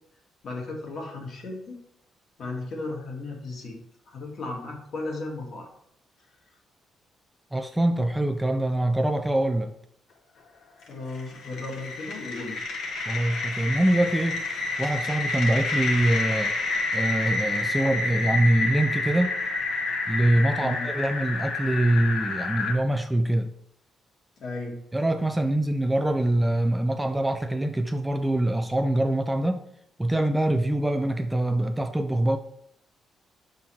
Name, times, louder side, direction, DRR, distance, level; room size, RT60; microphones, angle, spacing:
voice 1, 0.4-1.8 2.4-3.8 4.1-5.7 10.9-12.6 12.8-12.9 20.6-20.9 24.4-24.8, left 2 dB, 55° left, 1.9 m, -35 dB
voice 2, 7.5-9.7 13.1-14.5 14.8-16.5 16.9-19.3 20.1-23.5 24.9-29.7 30.0-32.4, right 1 dB, 10° right, 0.5 m, -24 dB
sound 1, 10.8-22.7, left 3 dB, 75° left, 1.3 m, -29 dB
5.7 x 3.9 x 4.5 m
cardioid pair, 90°, 0 cm